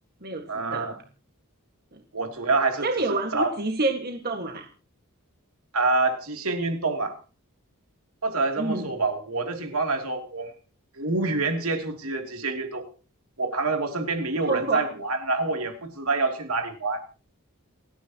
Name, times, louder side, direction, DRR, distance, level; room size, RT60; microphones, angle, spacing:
voice 1, 0.5-1.0 2.1-2.8 3.3-3.5 5.7-7.2 8.2-10.5 10.9-12.9 13.4-17.0, right 3 dB, 70° right, 3.0 m, -26 dB
voice 2, 2.8-4.7 8.6-8.9 14.4-14.8, right 2 dB, 45° right, 1.8 m, -28 dB
29.0 x 10.0 x 3.0 m
head